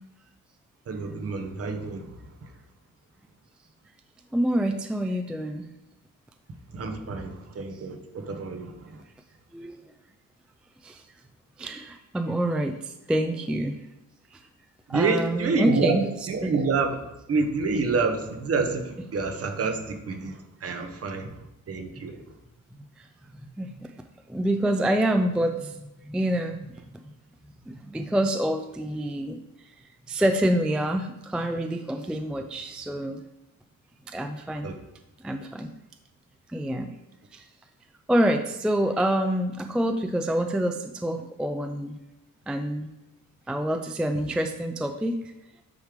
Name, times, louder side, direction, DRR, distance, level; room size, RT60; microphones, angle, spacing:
voice 1, 0.9-2.2 6.7-9.0 14.9-17.0 17.3-21.3 21.7-22.2 34.6-34.8, right 4 dB, 45° right, 6 dB, 1.0 m, -28 dB
voice 2, 4.3-5.7 9.5-9.8 10.8-11.0 11.6-13.8 14.3-14.4 14.9-16.0 16.4-16.5 20.8-21.0 23.0-23.1 23.6-23.9 24.3-27.0 27.7-29.4 30.1-33.2 34.1-34.7 35.2-35.7 36.5-36.9 37.3-37.4 38.1-42.0 42.5-42.9 43.5-45.2, right 1 dB, 5° right, 6 dB, 0.3 m, -27 dB
9.4 x 3.2 x 5.1 m, 0.97 s
cardioid pair, 125°, 34 cm